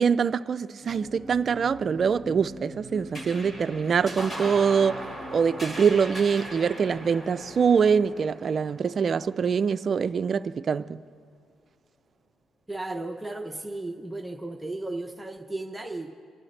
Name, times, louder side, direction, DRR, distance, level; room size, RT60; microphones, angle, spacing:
voice 1, 0.0-5.0 5.3-11.0, right 6 dB, 50° right, 0.4 m, -24 dB
sound 1, 0.8-7.9, equal, 45° left, 2.6 m, -45 dB
sound 2, 3.1-9.9, right 1 dB, 25° left, 3.0 m, -39 dB
voice 2, 12.7-16.1, right 2 dB, 10° right, 0.8 m, -35 dB
26.5 x 11.5 x 3.3 m
cardioid pair, 90°, 0 cm